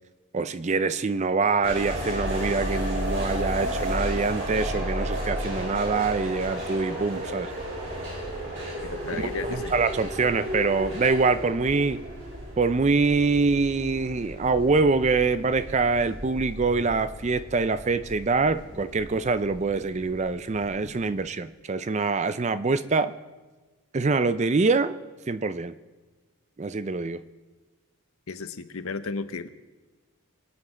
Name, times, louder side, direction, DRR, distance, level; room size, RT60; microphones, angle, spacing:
voice 1, 0.3-7.5 9.2-12.0 12.6-23.1 23.9-24.9 25.3-25.8 26.6-27.2, right 4 dB, 30° right, 13 dB, 0.4 m, -25 dB
sound 1, 1.6-21.1, right 1 dB, 60° right, 5.3 m, -33 dB
voice 2, 8.8-9.7 28.3-29.5, left 4 dB, 70° left, 11 dB, 0.8 m, -34 dB
23.0 x 8.4 x 4.3 m, 1.3 s
head